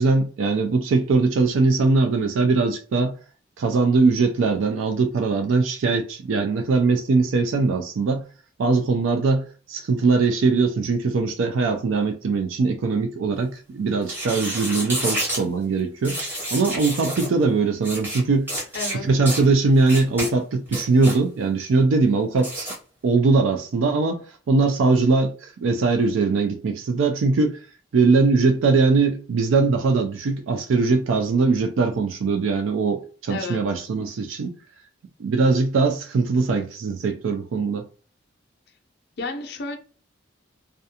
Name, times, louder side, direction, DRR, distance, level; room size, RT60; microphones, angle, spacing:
voice 1, 0.0-3.2 3.6-8.2 8.6-16.2 16.5-18.5 19.1-22.7 23.0-27.6 27.9-34.6 35.2-37.9, right 3 dB, 85° right, 0.4 m, -21 dB
sound 1, 14.0-15.4 16.0-17.3 17.8-18.2 18.5-19.0 19.3-19.4 19.9-20.3 20.7-21.2 22.4-22.8, equal, 10° right, 0.8 m, -29 dB
voice 2, 18.7-19.1 33.3-33.8 39.2-39.8, left 3 dB, 55° left, 0.5 m, -31 dB
2.4 x 2.2 x 2.7 m
head